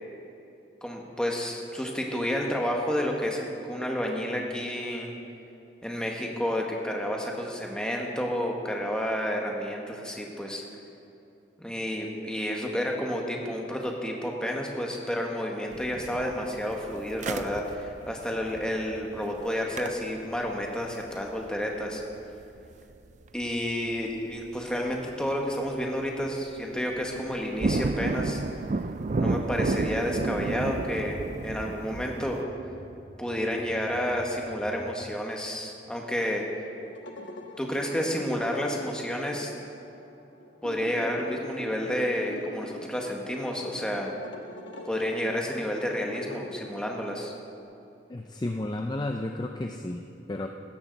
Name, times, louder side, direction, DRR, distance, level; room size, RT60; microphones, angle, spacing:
voice 1, 0.8-5.1 5.8-10.6 11.6-22.0 23.3-28.4 29.2-32.4 33.2-36.5 37.6-39.5 40.6-44.1 44.9-47.3, equal, 5° left, 0 dB, 1.4 m, -30 dB
sound 1, 15.7-23.7 24.0-24.1 24.7-25.1 25.4-25.8 26.2-26.3 26.6-32.4, right 3 dB, 40° right, 0.4 m, -32 dB
sound 2, 28.0-35.0, equal, 20° right, 1.1 m, -49 dB
sound 3, 36.8-47.6, left 2 dB, 80° left, 1.2 m, -44 dB
voice 2, 48.1-50.5, left 1 dB, 20° left, 4 dB, 0.5 m, -32 dB
17.0 x 13.5 x 4.1 m, 2.8 s
head